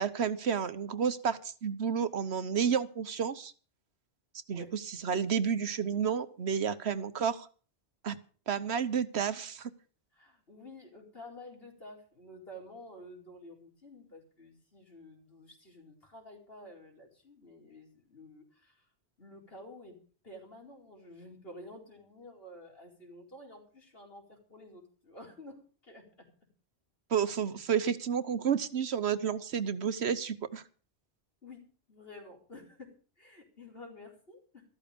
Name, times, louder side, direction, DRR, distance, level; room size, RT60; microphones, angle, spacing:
voice 1, 0.0-3.5 4.5-7.5 8.0-8.2 8.5-9.7 27.1-30.6, right 7 dB, 70° right, 13 dB, 1.2 m, -31 dB
voice 2, 10.1-18.9 19.2-20.0 20.2-26.3 31.4-34.6, left 1 dB, 60° left, 0 dB, 4.9 m, -51 dB
14.0 x 13.5 x 5.2 m, 0.40 s
omnidirectional pair, 1.1 m